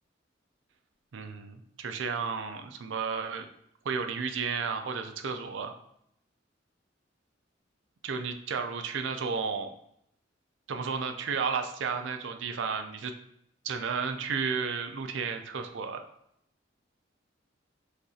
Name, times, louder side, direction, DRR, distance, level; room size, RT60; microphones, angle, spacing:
voice 1, 1.1-3.5 3.8-5.7 8.0-9.7 10.7-13.1 13.6-16.0, right 5 dB, 80° right, 6 dB, 0.4 m, -32 dB
6.5 x 2.4 x 2.7 m, 0.75 s
head